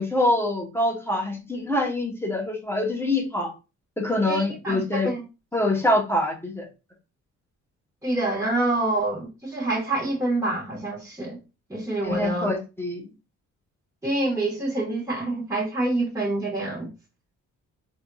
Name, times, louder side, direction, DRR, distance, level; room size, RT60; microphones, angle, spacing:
voice 1, 0.0-3.5 4.0-5.1 5.5-6.7 12.0-13.0, left 1 dB, 10° left, 0.9 m, -25 dB
voice 2, 4.2-5.2 8.0-11.4 11.7-12.5 14.0-16.9, right 2 dB, 10° right, 1.3 m, -26 dB
3.4 x 2.7 x 2.3 m
cardioid pair, 90°, 30 cm